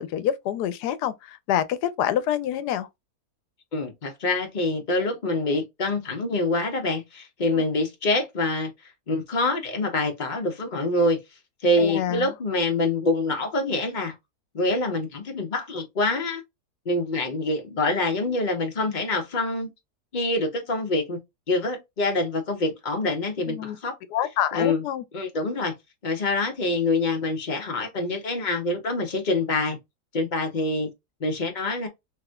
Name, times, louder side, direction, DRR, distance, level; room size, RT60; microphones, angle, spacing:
voice 1, 0.0-2.9 7.5-7.6 11.8-12.3 23.5-23.8 24.1-25.0, left 11 dB, 90° left, 1.2 m, -27 dB
voice 2, 3.7-8.7 9.1-11.2 11.6-14.1 14.5-16.4 16.8-19.7 20.1-21.2 21.5-23.9 24.5-24.8 25.1-25.7 26.0-29.8 30.1-30.9 31.2-31.9, left 2 dB, 35° left, 1.0 m, -25 dB
3.4 x 3.0 x 2.2 m
omnidirectional pair, 1.7 m